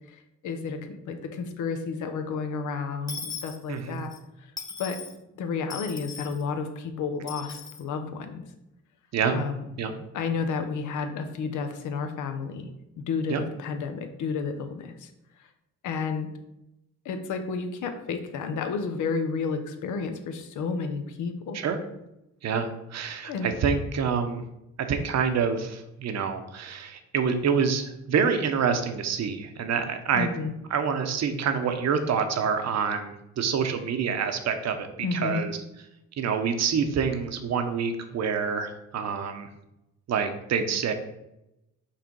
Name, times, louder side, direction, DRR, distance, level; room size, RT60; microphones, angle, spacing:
voice 1, 0.1-4.1 4.4-4.5 4.8-5.0 5.4-8.4 9.3-9.6 10.1-12.7 13.0-15.1 15.8-16.3 17.0-21.6 23.2-23.5 30.1-30.5 35.0-35.4, left 5 dB, 80° left, 7 dB, 0.9 m, -31 dB
Dishes pots and pans / Coin (dropping), 3.1-4.2 4.6-5.2 5.7-6.4 7.3-7.8, left 4 dB, 10° left, 1.1 m, -39 dB
voice 2, 3.7-4.0 9.1-9.4 9.8-9.9 13.3-13.4 21.5-21.8 22.4-24.4 24.9-30.3 30.7-35.6 36.2-39.5 40.1-40.9, right 6 dB, 60° right, 7 dB, 0.9 m, -27 dB
5.7 x 3.3 x 5.3 m, 0.88 s
cardioid pair, 90°, 30 cm